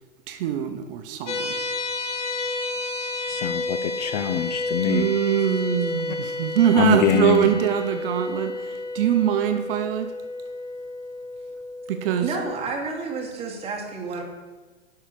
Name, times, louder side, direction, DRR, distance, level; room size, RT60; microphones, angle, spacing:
voice 1, 0.3-1.6 4.8-10.1 11.9-12.4, right 10 dB, 50° right, 7 dB, 0.8 m, -23 dB
sound 1, 1.3-12.4, left 2 dB, 90° left, 1.2 m, -31 dB
voice 2, 3.3-5.1 6.7-7.5, left 8 dB, 40° left, 9 dB, 0.5 m, -23 dB
voice 3, 12.2-14.2, right 4 dB, 15° right, -1 dB, 1.6 m, -30 dB
7.2 x 5.8 x 6.8 m, 1.3 s
hypercardioid pair, 135°, 36 cm